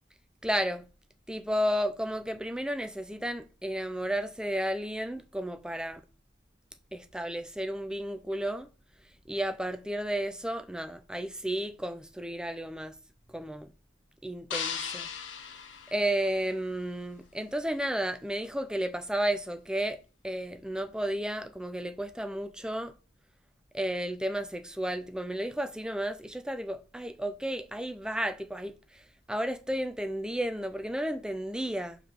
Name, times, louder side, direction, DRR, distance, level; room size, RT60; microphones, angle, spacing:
voice 1, 0.4-0.9 1.3-6.0 6.9-8.7 9.3-12.9 13.3-13.7 14.2-15.1 15.9-22.9 23.7-32.0, equal, 5° right, 0.7 m, -33 dB
sound 1, 14.5-16.8, left 7 dB, 90° left, 1.3 m, -38 dB
5.7 x 4.8 x 6.6 m
head